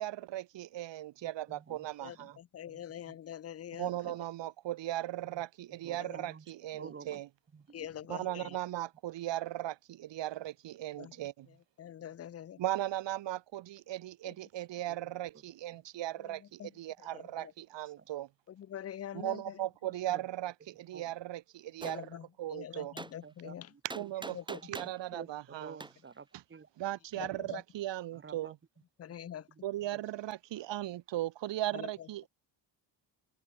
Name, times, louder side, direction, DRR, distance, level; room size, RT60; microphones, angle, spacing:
voice 1, 0.0-2.4 3.8-7.3 8.1-11.5 12.6-18.3 19.1-22.9 23.8-25.8 26.8-28.5 29.6-32.3, right 14 dB, 85° right, 3.1 m, -38 dB
voice 2, 1.2-1.9 2.2-2.4 2.7-3.2 4.0-4.2 5.3-5.4 5.7-7.2 7.5-7.9 8.4-8.6 12.0-12.1 14.9-15.0 15.7-15.8 18.0-18.1 20.1-20.2 20.9-21.2 22.7-22.9 23.2-24.1 24.6-26.7 28.1-28.5 29.2-29.6 29.9-30.0 31.7-31.8, right 5 dB, 30° right, 6.7 m, -52 dB
voice 3, 2.0-3.9 6.0-6.2 7.7-8.5 11.0-11.1 11.8-12.6 14.2-14.3 16.2-16.7 17.0-17.5 18.5-19.6 21.8-23.7 24.3-24.4 27.2-27.6 29.0-29.5 31.7-31.9, left 10 dB, 35° left, 0.7 m, -45 dB
Gunshot gunfire, 21.8-22.0 23.0-23.1 23.9-25.0 25.8-25.9, right 2 dB, 10° right, 2.1 m, -42 dB
cardioid pair, 160°, 42 cm